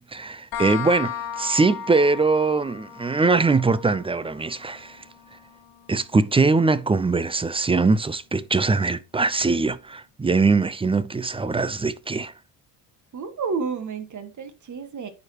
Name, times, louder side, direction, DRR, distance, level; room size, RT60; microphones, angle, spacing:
voice 1, 0.0-5.0 5.9-12.3, right 3 dB, 15° right, 0.5 m, -22 dB
sound 1, 0.5-7.9, left 8 dB, 65° left, 1.6 m, -37 dB
voice 2, 13.1-15.1, right 5 dB, 45° right, 1.6 m, -30 dB
9.4 x 4.7 x 3.0 m
hypercardioid pair, 65°, 42 cm